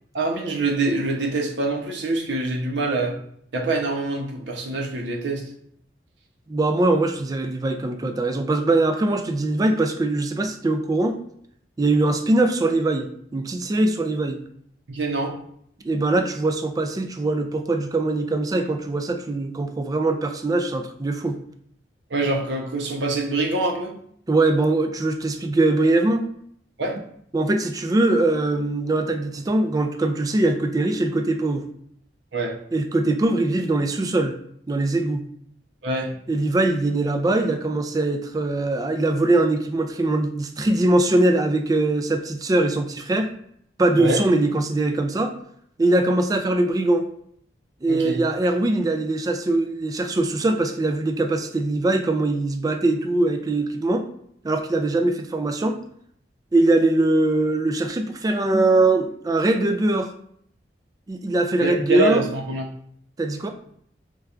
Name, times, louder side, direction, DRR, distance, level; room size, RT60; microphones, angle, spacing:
voice 1, 0.1-3.2 3.5-5.5 14.9-15.4 22.1-23.9 26.8-27.0 32.3-32.6 35.8-36.2 44.0-44.2 47.9-48.2 61.6-62.7, right 2 dB, 85° right, 1 dB, 0.7 m, -25 dB
voice 2, 6.5-11.2 11.8-14.4 15.8-21.4 24.3-26.2 27.3-31.7 32.7-34.3 34.7-35.3 36.3-43.3 43.8-45.3 45.8-47.1 47.8-54.1 54.4-55.8 56.5-60.1 61.1-62.2 63.2-63.5, right 2 dB, 20° right, 6 dB, 0.3 m, -22 dB
4.2 x 2.3 x 2.4 m, 0.66 s
head